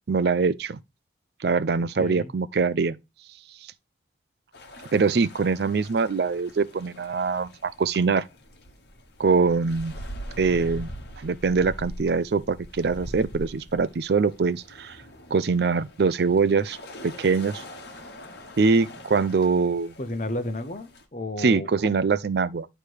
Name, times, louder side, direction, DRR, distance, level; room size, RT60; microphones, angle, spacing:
voice 1, 0.1-0.8 1.4-3.0 4.9-8.3 9.2-9.9 10.4-10.9 11.2-15.0 15.3-16.8 17.0-17.6 18.6-19.9 21.4-22.7, right 4 dB, 60° right, 0.4 m, -23 dB
voice 2, 1.9-2.3 20.0-22.1, left 1 dB, 40° left, 0.9 m, -33 dB
sound 1, 4.5-21.0, equal, 60° left, 1.3 m, -43 dB
9.8 x 3.3 x 4.6 m
head